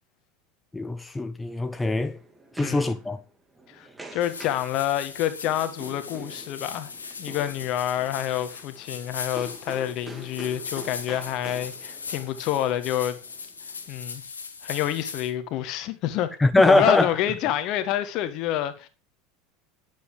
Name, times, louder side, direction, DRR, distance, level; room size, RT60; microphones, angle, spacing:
voice 1, 0.7-2.2 2.5-3.2 16.4-17.1, left 2 dB, 10° left, 0.7 m, -22 dB
sound 1, 1.4-13.9, right 1 dB, 10° right, 2.1 m, -46 dB
voice 2, 2.6-2.9 3.7-6.9 7.2-13.2 13.9-14.2 14.6-16.3 16.7-18.9, left 12 dB, 50° left, 1.5 m, -28 dB
sound 2, 4.2-15.3, left 5 dB, 80° left, 1.4 m, -39 dB
10.0 x 7.8 x 5.0 m
figure-of-eight pair, 75°, 0 cm